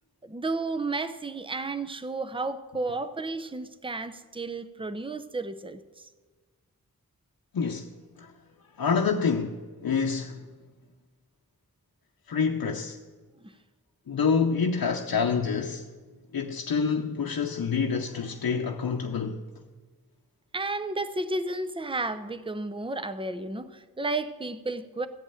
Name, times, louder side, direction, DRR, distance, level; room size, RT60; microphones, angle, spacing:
voice 1, 0.2-6.1 13.4-13.5 20.5-25.1, right 2 dB, 15° right, 0.7 m, -32 dB
voice 2, 7.5-8.3 8.8-10.5 12.3-13.0 14.1-15.9 16.3-19.4, left 5 dB, 85° left, 0.7 m, -27 dB
15.0 x 5.3 x 8.7 m
wide cardioid pair, 50°, 35 cm